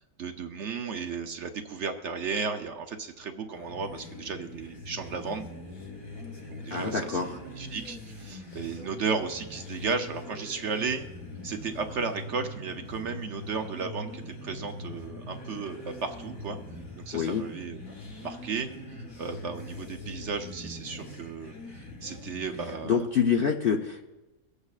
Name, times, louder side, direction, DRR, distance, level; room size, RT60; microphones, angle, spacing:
voice 1, 0.2-5.4 6.5-11.1 11.4-16.6 16.9-17.8 18.2-18.7 19.2-21.5 22.0-23.0, right 5 dB, 60° right, 5 dB, 0.9 m, -34 dB
sound 1, 3.5-23.0, left 1 dB, 65° left, 4.0 m, -43 dB
voice 2, 6.7-7.4 17.1-17.4 22.8-24.0, left 6 dB, 50° left, 2 dB, 0.7 m, -26 dB
22.5 x 8.1 x 2.4 m, 1.1 s
omnidirectional pair, 1.6 m